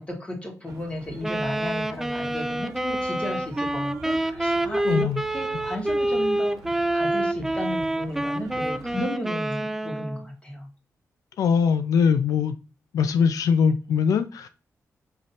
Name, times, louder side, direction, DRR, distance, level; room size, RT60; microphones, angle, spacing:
voice 1, 0.0-10.7, left 1 dB, 20° left, 1 dB, 1.6 m, -34 dB
sound 1, 0.6-9.0, right 4 dB, 85° right, 1.0 m, -45 dB
Wind instrument woodwind instrument, 1.2-10.3, right 1 dB, 5° right, 0.3 m, -27 dB
voice 2, 4.9-5.2 11.4-12.5 12.9-14.5, left 6 dB, 90° left, 10 dB, 0.4 m, -21 dB
5.7 x 3.1 x 2.6 m, 0.33 s
wide cardioid pair, 120°, 6 cm